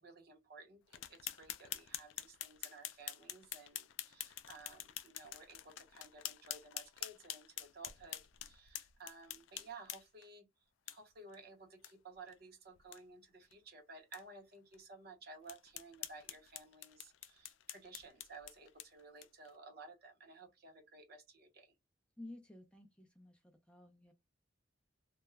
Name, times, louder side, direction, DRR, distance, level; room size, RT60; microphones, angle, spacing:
voice 1, 0.0-10.5 10.9-21.7, right 3 dB, 55° right, 0.7 m, -56 dB
sound 1, 0.9-10.3 10.9-11.0 11.3-11.4 11.8-11.9 12.3-12.4 12.8-13.0 13.5-13.6 14.1-14.2 14.7-14.8 15.5-19.5, left 12 dB, 85° left, 0.3 m, -47 dB
voice 2, 22.2-24.1, left 2 dB, 5° left, 0.4 m, -54 dB
2.3 x 2.0 x 3.1 m
head